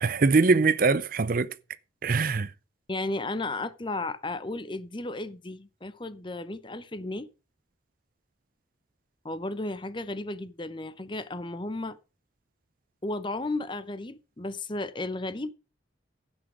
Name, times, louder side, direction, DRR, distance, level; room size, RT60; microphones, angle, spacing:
voice 1, 0.0-1.5 2.0-2.5, right 4 dB, 45° right, 0.5 m, -22 dB
voice 2, 2.9-7.3 9.2-12.0 13.0-15.5, left 2 dB, 25° left, 0.8 m, -34 dB
15.5 x 6.3 x 4.9 m
head